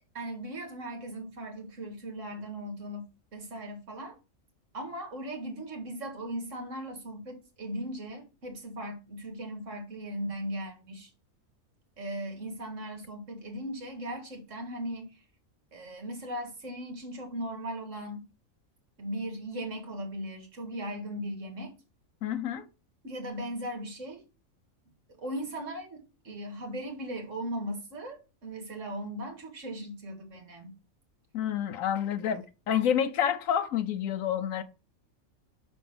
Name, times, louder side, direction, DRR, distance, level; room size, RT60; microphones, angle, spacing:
voice 1, 0.1-4.2 4.7-11.1 12.0-15.1 15.7-18.3 19.0-21.7 23.0-24.2 25.2-30.8, right 1 dB, 60° right, 2.1 m, -38 dB
voice 2, 22.2-22.7 31.3-34.6, left 9 dB, 75° left, 1.1 m, -28 dB
6.0 x 4.5 x 5.5 m
omnidirectional pair, 1.5 m